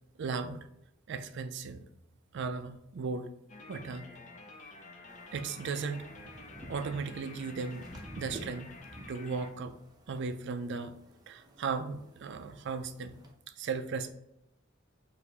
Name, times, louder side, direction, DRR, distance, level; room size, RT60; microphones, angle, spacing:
voice 1, 0.2-0.6 1.1-1.8 2.3-3.3 3.7-4.1 5.3-6.0 6.7-7.9 8.2-8.7 9.1-9.7 10.1-10.9 11.3-13.2 13.6-14.1, right 4 dB, 60° right, 9 dB, 0.4 m, -36 dB
sound 1, 3.5-9.5, left 3 dB, 40° left, 0.6 m, -50 dB
sound 2, 5.1-13.3, right 1 dB, 20° right, 0.6 m, -51 dB
4.7 x 2.6 x 3.3 m, 0.82 s
head